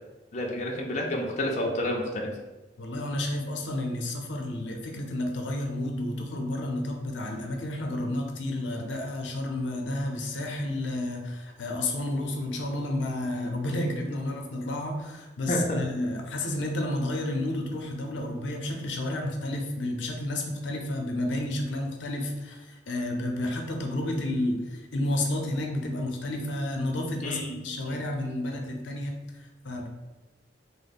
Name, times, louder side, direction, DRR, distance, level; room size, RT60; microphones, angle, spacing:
voice 1, 0.3-2.3 15.5-15.8 27.2-28.0, left 1 dB, 40° left, -1 dB, 0.5 m, -30 dB
voice 2, 2.8-29.9, left 1 dB, 85° left, 2 dB, 0.6 m, -31 dB
3.0 x 2.0 x 4.1 m, 1.2 s
head